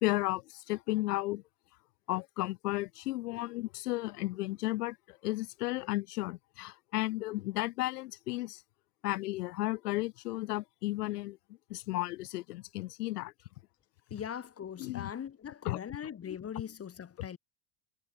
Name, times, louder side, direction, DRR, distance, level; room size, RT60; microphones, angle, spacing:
voice 1, 0.0-1.4 2.1-8.6 9.0-11.4 11.7-13.3 14.8-15.1 15.6-15.8 16.3-16.4 17.2-17.3, left 18 dB, 85° left, 1.2 m, -34 dB
voice 2, 14.1-17.4, left 8 dB, 30° left, 2.8 m, -41 dB
supercardioid pair, 95°, 45 cm